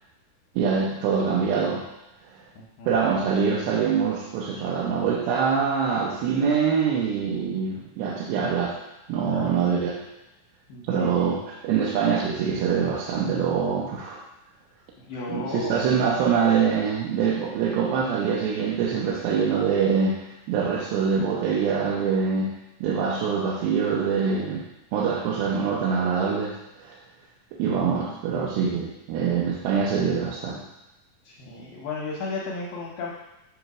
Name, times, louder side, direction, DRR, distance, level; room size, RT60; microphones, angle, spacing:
voice 1, 0.6-1.8 2.9-8.8 9.1-10.0 10.9-14.2 15.3-24.6 24.9-27.0 27.6-30.6, right 6 dB, 80° right, -3 dB, 2.6 m, -24 dB
voice 2, 2.6-2.9 9.3-9.6 10.7-11.4 15.0-15.8 31.3-33.1, left 3 dB, 75° left, -4 dB, 2.4 m, -34 dB
7.9 x 3.2 x 5.9 m, 0.94 s
omnidirectional pair, 4.4 m